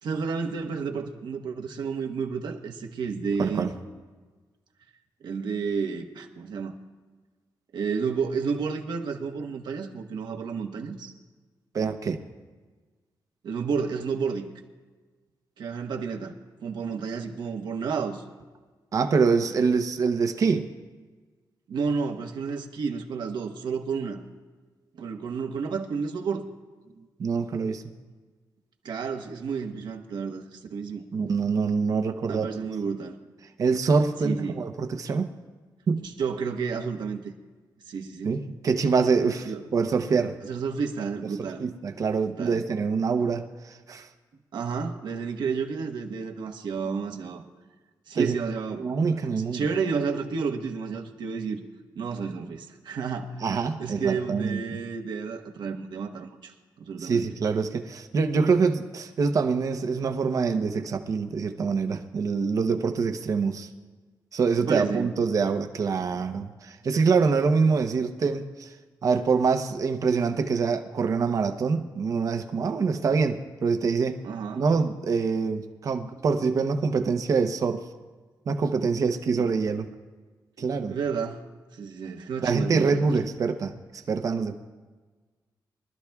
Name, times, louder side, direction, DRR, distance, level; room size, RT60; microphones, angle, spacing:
voice 1, 0.0-3.7 5.2-6.7 7.7-11.1 13.4-14.5 15.6-16.3 16.6-18.2 21.7-24.2 24.9-26.4 28.8-31.0 32.3-33.2 34.2-34.6 36.0-37.3 37.8-38.3 39.4-39.7 40.4-41.6 42.2-42.6 43.2-43.3 44.5-47.4 48.1-48.9 49.2-51.6 51.9-53.4 53.8-57.3 64.6-65.1 74.2-74.7 79.3-79.5 80.9-81.4 81.7-83.1, right 5 dB, 80° right, 3 dB, 1.3 m, -31 dB
voice 2, 3.4-3.7 11.7-12.2 18.9-20.7 27.2-27.8 31.1-32.7 33.6-35.3 35.9-36.1 38.2-40.4 41.6-44.1 48.1-48.4 48.8-49.7 53.4-54.8 57.0-63.7 64.3-68.7 69.0-74.2 74.5-77.8 78.5-79.9 80.6-80.9 82.4-84.5, right 5 dB, 50° right, 7 dB, 0.8 m, -25 dB
23.5 x 13.0 x 2.3 m, 1.4 s
wide cardioid pair, 180°, 8 cm